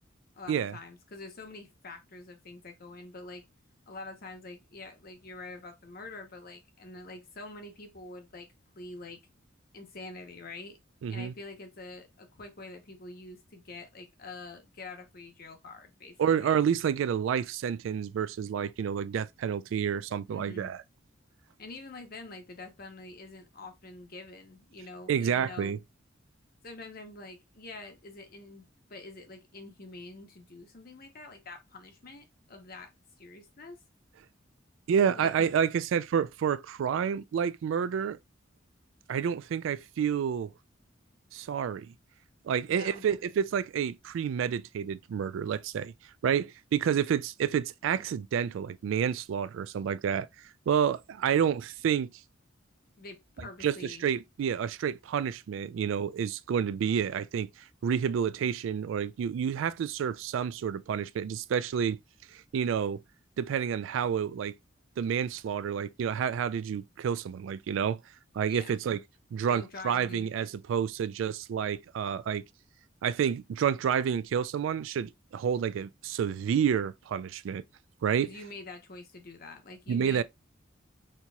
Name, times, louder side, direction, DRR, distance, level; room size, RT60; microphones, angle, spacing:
voice 1, 0.3-3.4 3.9-8.5 8.8-9.2 9.7-10.8 11.1-16.6 20.3-20.7 21.6-25.8 26.6-32.9 33.2-33.8 35.1-35.5 42.7-43.0 53.0-54.0 68.5-68.8 69.5-70.3 78.2-80.2, left 3 dB, 50° left, 0.9 m, -46 dB
voice 2, 11.0-11.3 16.2-20.8 25.1-25.8 34.9-38.2 39.1-40.5 41.3-41.9 42.4-45.9 46.2-50.3 50.7-52.1 53.6-57.5 57.8-62.0 62.3-63.0 63.4-64.5 65.0-68.0 68.3-69.0 69.3-72.4 73.0-77.6 78.0-78.3 79.9-80.2, right 8 dB, 80° right, 0.3 m, -29 dB
4.4 x 2.9 x 2.3 m
head